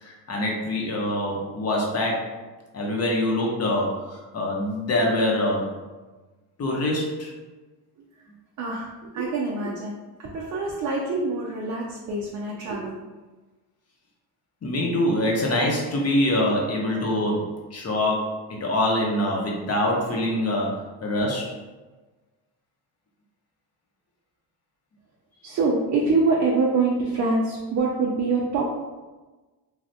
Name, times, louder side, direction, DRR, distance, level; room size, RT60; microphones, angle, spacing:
voice 1, 0.0-2.4 2.7-5.7 6.6-7.3 14.6-21.5, left 1 dB, 35° left, -1 dB, 0.8 m, -25 dB
voice 2, 8.6-12.9 25.4-28.6, right 3 dB, 45° right, -2 dB, 0.5 m, -25 dB
3.3 x 2.3 x 2.6 m, 1.2 s
cardioid pair, 105°, 42 cm